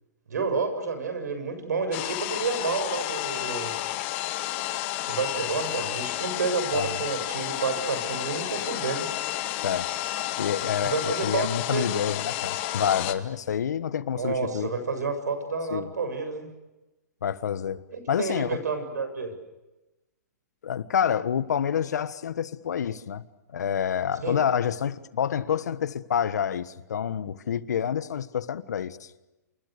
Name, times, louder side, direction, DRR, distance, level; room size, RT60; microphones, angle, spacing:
voice 1, 0.3-3.7 5.1-9.1 10.8-12.0 14.1-16.5 17.9-19.3 24.2-24.4, right 4 dB, 80° right, 7.5 m, -30 dB
sound 1, 1.9-13.1, left 15 dB, 45° left, 2.0 m, -31 dB
voice 2, 6.7-7.0 9.6-9.9 10.4-14.7 15.7-15.9 17.2-18.6 20.6-23.2 23.5-29.1, left 8 dB, 75° left, 1.4 m, -28 dB
28.5 x 27.0 x 6.7 m
hypercardioid pair, 135°, 9 cm